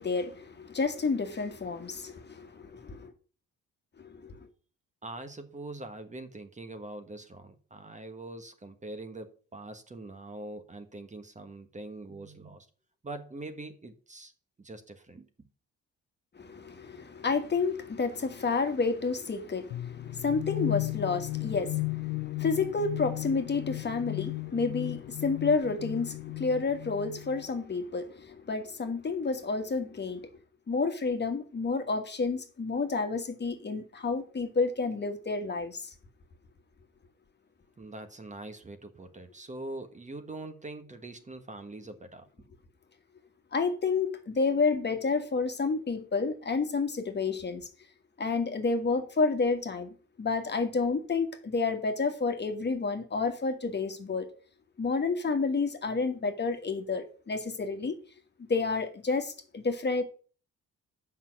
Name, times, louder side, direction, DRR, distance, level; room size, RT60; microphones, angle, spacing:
voice 1, 0.0-3.1 4.0-4.5 16.3-30.3 30.7-35.9 43.5-47.7 48.2-54.3 54.8-58.0 58.5-60.0, left 4 dB, 35° left, 1.7 m, -30 dB
voice 2, 5.0-12.7 13.0-14.3 14.6-15.3 37.8-42.3, right 2 dB, 25° right, 1.4 m, -43 dB
sound 1, 19.7-27.5, left 21 dB, 90° left, 0.5 m, -35 dB
7.3 x 6.0 x 6.0 m
cardioid pair, 90°, 30 cm